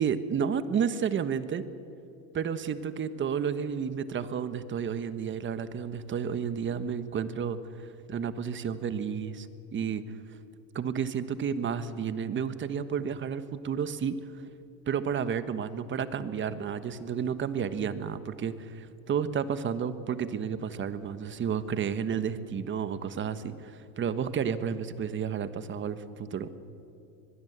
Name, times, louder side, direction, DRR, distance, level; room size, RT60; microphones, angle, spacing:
voice 1, 0.0-1.6 2.3-7.6 8.1-9.5 9.7-10.0 10.7-14.2 14.9-26.5, right 7 dB, 30° right, 12 dB, 1.3 m, -31 dB
23.5 x 21.5 x 8.1 m, 2.7 s
supercardioid pair, 125°, 40 cm